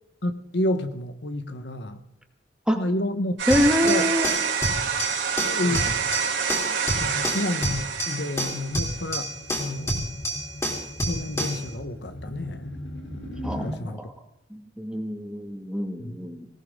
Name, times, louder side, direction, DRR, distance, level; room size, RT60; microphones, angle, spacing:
voice 1, 0.2-2.0 2.7-3.4 3.8-4.1 5.4-5.8 7.0-9.3 9.6-10.1 11.1-12.8 13.6-14.0 16.0-16.2, left 1 dB, 70° left, 9 dB, 1.2 m, -29 dB
sound 1, 3.4-8.9, right 7 dB, 85° right, 4.0 m, -27 dB
sound 2, 3.5-11.7, equal, 15° left, 3.6 m, -29 dB
voice 2, 3.5-4.4 5.6-5.7 13.4-14.1 14.5-16.5, equal, 5° right, 4 dB, 2.0 m, -25 dB
sound 3, 8.5-13.8, equal, 90° left, 3.4 m, -38 dB
19.5 x 18.0 x 3.8 m, 0.81 s
head